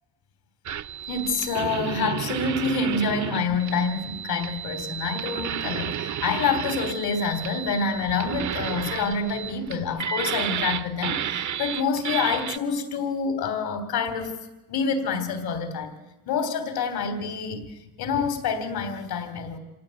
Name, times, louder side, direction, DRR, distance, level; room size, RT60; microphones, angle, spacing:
sound 1, 0.7-12.6, right 10 dB, 50° right, 0.8 m, -32 dB
voice 1, 1.1-14.3 14.7-15.9 16.3-19.6, left 5 dB, 70° left, 9 dB, 3.6 m, -27 dB
27.0 x 17.5 x 9.1 m, 1.0 s
cardioid pair, 100°, 38 cm